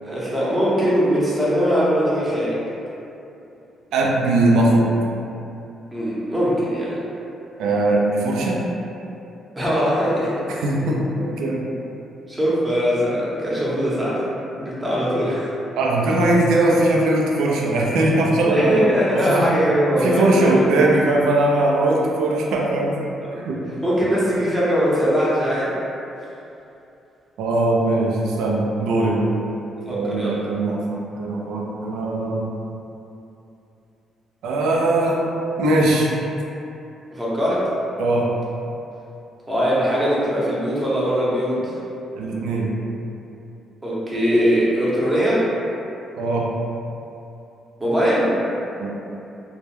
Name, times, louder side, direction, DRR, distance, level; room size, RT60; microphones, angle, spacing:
voice 1, 0.0-2.6 5.9-6.9 9.6-10.3 12.3-14.2 14.5-15.5 18.4-20.2 23.2-23.4 23.8-25.7 29.9-30.4 37.1-37.7 39.5-41.7 43.8-45.5 47.8-48.4, equal, 15° right, -8 dB, 0.7 m, -21 dB
voice 2, 3.9-4.9 7.6-8.6 10.6-11.7 15.7-18.8 19.1-19.6 20.0-23.0 23.4-23.6 27.4-29.3 29.9-32.5 34.4-35.3 35.6-36.1 38.0-38.3 42.2-42.7 46.2-46.5 48.8-48.9, right 2 dB, 85° right, -2 dB, 0.3 m, -20 dB
2.2 x 2.0 x 3.0 m, 2.8 s
cardioid pair, 90°, 0 cm